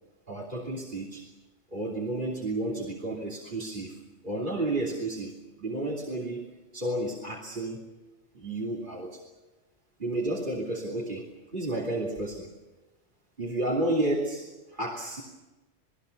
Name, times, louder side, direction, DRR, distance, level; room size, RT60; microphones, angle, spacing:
voice 1, 0.3-1.3 1.7-6.5 6.7-7.8 8.3-9.2 10.0-12.5 13.4-15.2, right 1 dB, 40° right, 1 dB, 3.4 m, -31 dB
29.5 x 20.5 x 6.7 m, 1.1 s
omnidirectional pair, 1.3 m